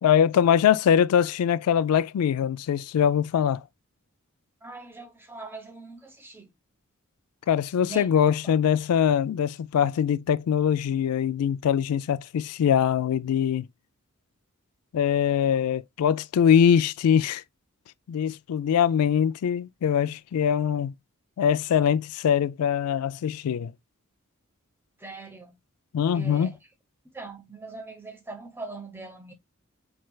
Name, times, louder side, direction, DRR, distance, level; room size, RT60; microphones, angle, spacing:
voice 1, 0.0-3.6 7.5-13.7 14.9-17.4 18.1-20.9 21.4-23.7 25.9-26.5, left 8 dB, 90° left, 0.3 m, -22 dB
voice 2, 4.6-6.5 7.8-8.1 8.4-8.6 25.0-25.6 26.1-26.5 27.0-29.3, right 3 dB, 10° right, 0.8 m, -41 dB
4.4 x 3.3 x 2.2 m
head